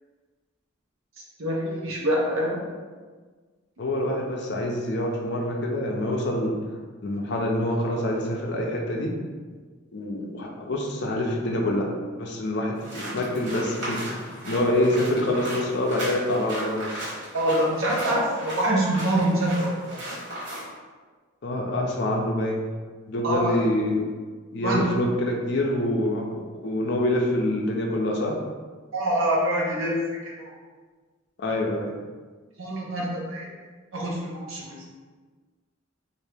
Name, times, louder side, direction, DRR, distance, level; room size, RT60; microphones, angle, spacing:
voice 1, 1.4-2.6 17.3-20.0 23.2-23.6 24.6-24.9 28.9-29.9 30.4-30.5 32.6-33.5 33.9-34.9, right 1 dB, 80° right, -3 dB, 0.8 m, -25 dB
voice 2, 3.8-6.5 7.0-9.1 9.9-17.0 21.4-22.6 23.1-24.1 24.5-26.3 26.6-28.3 31.4-31.9, left 1 dB, 50° left, 0 dB, 0.5 m, -26 dB
sound 1, 12.7-20.7, right 1 dB, 55° right, 1.3 m, -36 dB
2.8 x 2.5 x 3.4 m, 1.5 s
head